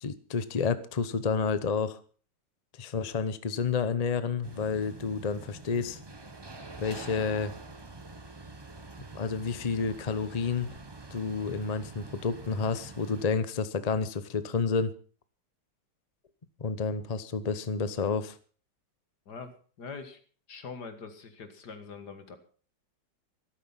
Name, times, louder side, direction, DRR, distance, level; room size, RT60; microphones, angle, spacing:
voice 1, 0.0-2.0 2.8-6.0 6.8-7.5 9.1-10.7 11.1-14.9 16.6-18.4, left 5 dB, 35° left, 13 dB, 0.6 m, -30 dB
sound 1, 4.4-13.2, right 2 dB, 20° right, 0.8 m, -46 dB
voice 2, 19.3-20.2 20.5-22.4, left 5 dB, 60° left, 9 dB, 2.2 m, -43 dB
13.5 x 12.5 x 5.7 m, 0.41 s
omnidirectional pair, 2.0 m